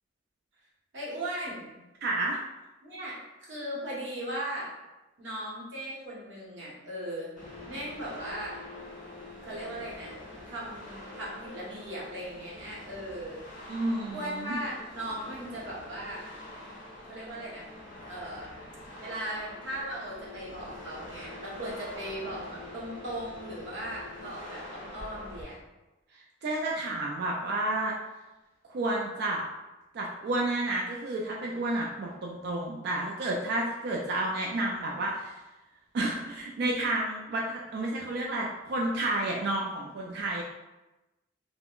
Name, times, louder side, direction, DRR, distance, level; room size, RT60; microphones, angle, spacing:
voice 1, 0.9-1.8 2.8-4.7 5.2-7.3 7.7-8.6 9.4-10.2 10.4-13.4 14.1-16.2 17.0-17.7 18.1-18.6 19.0-25.6, right 1 dB, 75° right, -5 dB, 0.9 m, -38 dB
voice 2, 2.0-2.4 13.7-14.6 26.4-27.9 28.6-29.5 29.9-35.4 35.9-40.4, right 2 dB, 60° right, -2 dB, 0.3 m, -31 dB
sound 1, 7.4-25.4, left 1 dB, 45° left, 0.9 m, -45 dB
3.6 x 2.1 x 2.3 m, 1.1 s
head